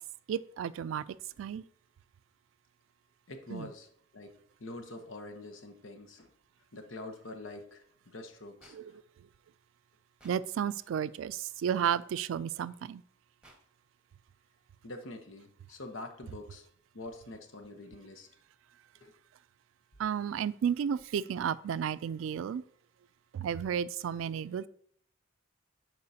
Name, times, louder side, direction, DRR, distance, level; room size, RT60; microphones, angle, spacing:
voice 1, 0.3-1.0 1.4-1.6 3.5-3.7 8.7-8.8 10.2-13.0 20.0-22.6 23.3-24.7, right 8 dB, 80° right, 17 dB, 0.3 m, -32 dB
voice 2, 3.3-6.3 6.7-9.0 14.8-16.7 16.9-18.3 19.0-19.1, left 2 dB, 80° left, 5 dB, 1.0 m, -45 dB
sound 1, 8.6-8.8 10.2-10.3 11.8-12.0 13.4-13.6, right 1 dB, 5° right, 1.4 m, -56 dB
11.5 x 4.7 x 2.8 m, 0.63 s
head